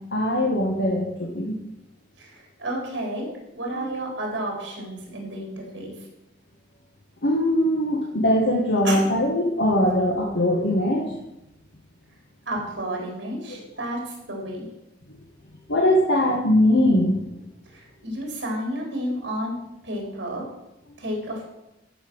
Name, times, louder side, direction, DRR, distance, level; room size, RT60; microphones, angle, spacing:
voice 1, 0.1-1.6 3.7-3.9 7.2-11.1 15.7-17.2, left 1 dB, 80° left, -1 dB, 1.6 m, -21 dB
voice 2, 2.2-3.3 3.5-5.9 8.8-9.0 12.5-14.6 17.7-19.6 19.8-20.4 21.0-21.4, right 1 dB, 75° right, 0 dB, 3.9 m, -31 dB
13.0 x 5.8 x 6.2 m, 0.89 s
head